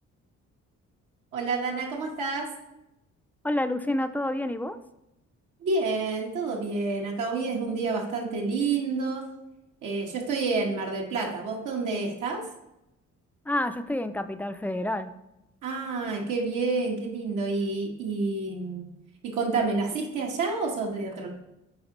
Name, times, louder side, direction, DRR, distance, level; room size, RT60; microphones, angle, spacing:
voice 1, 1.3-2.5 5.6-9.3 9.8-12.4 15.6-18.8 19.3-21.3, right 3 dB, 85° right, -1 dB, 1.3 m, -29 dB
voice 2, 3.4-4.8 13.5-15.1, left 1 dB, 5° left, 10 dB, 0.3 m, -28 dB
9.4 x 3.5 x 3.0 m, 0.86 s
cardioid pair, 90°, 30 cm